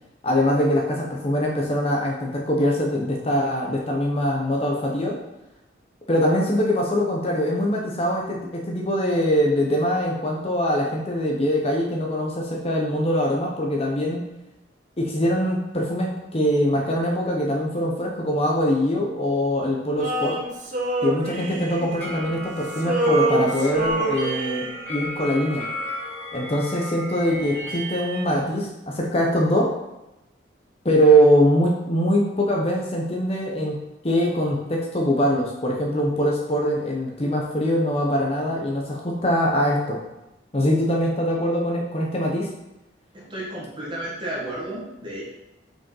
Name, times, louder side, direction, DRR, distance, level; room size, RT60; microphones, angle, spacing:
voice 1, 0.2-5.1 6.1-14.2 15.0-20.3 21.0-24.6 24.9-25.6 26.3-29.7 30.8-33.7 34.0-40.0 40.5-42.5, equal, 30° left, -1 dB, 0.9 m, -22 dB
Male singing, 20.0-22.4 22.7-24.9, right 2 dB, 40° right, 1.1 m, -26 dB
sound 1, 22.0-28.2, equal, 10° left, 1.5 m, -34 dB
voice 2, 43.1-45.2, right 1 dB, 25° right, -6 dB, 1.7 m, -32 dB
5.8 x 4.9 x 5.5 m, 0.95 s
head